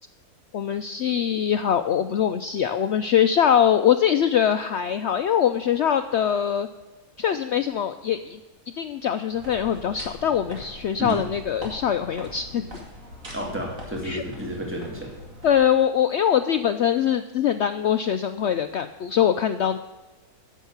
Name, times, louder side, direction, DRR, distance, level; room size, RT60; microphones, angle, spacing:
voice 1, 0.5-6.7 7.2-8.4 8.8-12.8 14.0-14.2 15.4-19.8, left 9 dB, 75° left, 9 dB, 0.6 m, -23 dB
sound 1, 9.3-15.6, left 1 dB, 55° right, 2.9 m, -42 dB
voice 2, 13.3-15.1, equal, 5° right, -1 dB, 2.3 m, -31 dB
10.0 x 7.2 x 8.1 m, 1.2 s
omnidirectional pair, 1.7 m